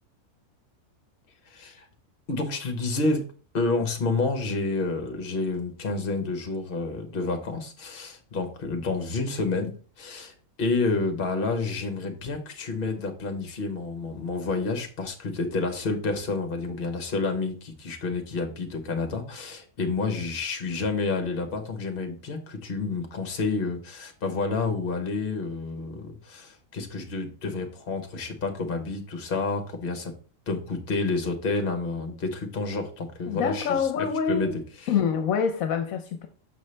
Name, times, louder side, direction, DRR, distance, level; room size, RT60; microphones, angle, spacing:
voice 1, 1.5-1.9 2.3-30.1 30.5-34.9, left 3 dB, 45° left, 1.0 m, -29 dB
voice 2, 33.3-34.6 34.9-36.3, left 7 dB, 75° left, 1.1 m, -26 dB
6.1 x 5.4 x 3.2 m
omnidirectional pair, 1.5 m